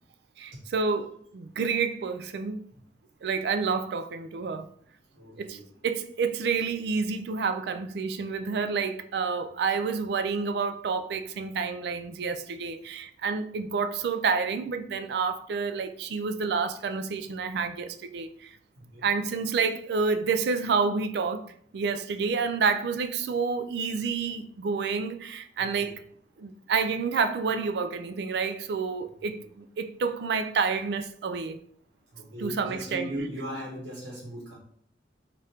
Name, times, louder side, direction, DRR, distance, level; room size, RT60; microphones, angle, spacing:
voice 1, 0.4-2.6 3.2-4.7 5.4-18.5 19.0-26.0 26.4-31.6 32.4-33.1, right 5 dB, 60° right, 0.3 m, -29 dB
voice 2, 5.1-5.8 18.7-19.1 25.6-25.9 29.3-29.4 32.1-34.5, equal, 90° right, 1.1 m, -38 dB
3.4 x 2.5 x 4.2 m
head